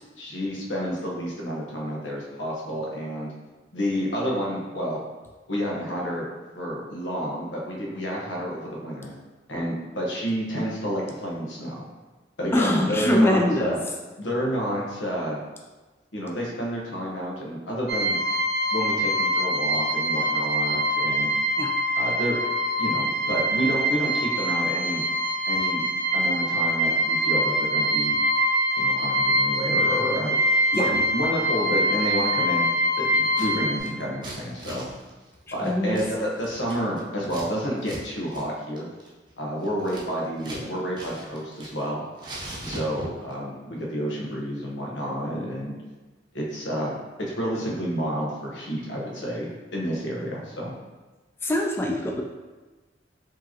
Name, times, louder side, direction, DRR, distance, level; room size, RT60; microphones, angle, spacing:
voice 1, 0.2-3.3 3.7-5.0 5.5-6.3 6.5-9.1 9.5-11.9 12.4-13.8 14.2-15.4 16.1-18.2 18.7-21.3 22.0-22.4 22.8-25.0 25.5-25.9 26.1-28.2 28.8-30.3 30.7-32.7 33.0-34.9 35.5-38.9 39.4-42.0 42.6-45.7 46.3-46.9 47.2-50.7, equal, 90° left, -3 dB, 1.0 m, -29 dB
voice 2, 12.5-13.7 21.6-21.7 30.7-30.9 35.6-36.0 51.4-52.2, left 1 dB, 15° left, 1 dB, 0.3 m, -23 dB
sound 1, 17.9-33.8, equal, 65° right, 0.8 m, -24 dB
Scissors, 33.1-33.5 33.8-37.5 37.8-38.0 38.3-38.5 38.8-40.7 40.9-41.9 42.2-43.3, right 1 dB, 25° right, 0.7 m, -40 dB
4.7 x 3.0 x 2.8 m, 1.2 s
head